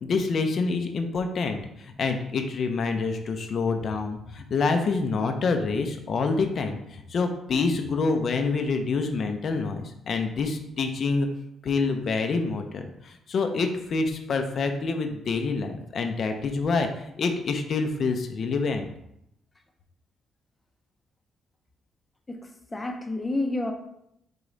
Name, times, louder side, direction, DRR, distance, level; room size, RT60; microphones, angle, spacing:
voice 1, 0.0-11.3 11.6-18.9, left 4 dB, 55° left, 5 dB, 0.6 m, -27 dB
voice 2, 22.3-23.7, left 2 dB, 20° left, 4 dB, 0.7 m, -30 dB
4.9 x 2.3 x 3.9 m, 0.77 s
cardioid pair, 90°, 0 cm